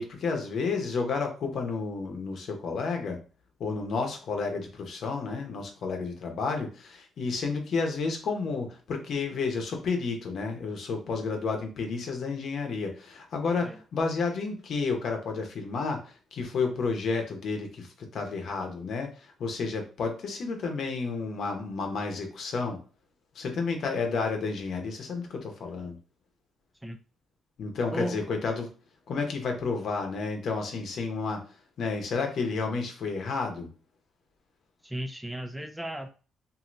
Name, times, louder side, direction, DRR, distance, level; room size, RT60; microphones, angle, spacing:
voice 1, 0.0-3.2 3.6-22.8 23.3-25.9 27.6-28.7 29.1-31.4 31.8-33.7, left 4 dB, 65° left, 4 dB, 0.8 m, -31 dB
voice 2, 27.9-28.2 34.8-36.1, equal, 10° right, 6 dB, 0.4 m, -35 dB
2.7 x 2.6 x 3.1 m, 0.36 s
cardioid pair, 90°, 0 cm